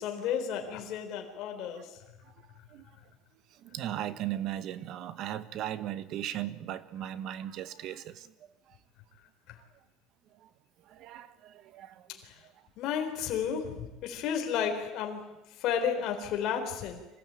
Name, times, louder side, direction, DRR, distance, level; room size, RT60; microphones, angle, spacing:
voice 1, 0.0-1.9 12.2-12.3 12.8-15.3 15.6-17.0, left 8 dB, 50° left, 4.3 m, -32 dB
voice 2, 3.7-8.3 10.9-12.1 16.4-16.5, right 12 dB, 50° right, 1.2 m, -37 dB
26.0 x 16.0 x 9.2 m
cardioid pair, 155°, 0 cm